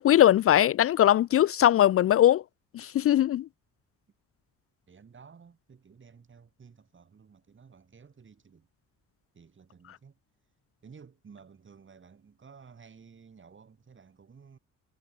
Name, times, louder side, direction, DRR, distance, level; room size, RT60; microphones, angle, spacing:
voice 1, 0.0-2.4 2.7-3.5, left 12 dB, 50° left, 0.4 m, -21 dB
voice 2, 4.9-8.7 9.3-10.2 10.8-14.6, right 6 dB, 40° right, 7.9 m, -54 dB
cardioid pair, 90°, 30 cm